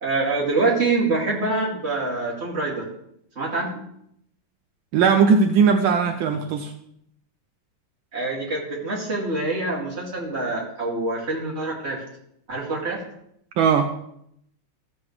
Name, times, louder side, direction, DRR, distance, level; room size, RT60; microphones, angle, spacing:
voice 1, 0.0-2.8 3.4-3.8 8.1-12.0 12.5-13.0, right 3 dB, 30° right, -5 dB, 2.7 m, -25 dB
voice 2, 4.9-6.7 13.6-13.9, right 6 dB, 80° right, 6 dB, 1.5 m, -18 dB
14.5 x 7.3 x 3.3 m, 0.74 s
omnidirectional pair, 2.2 m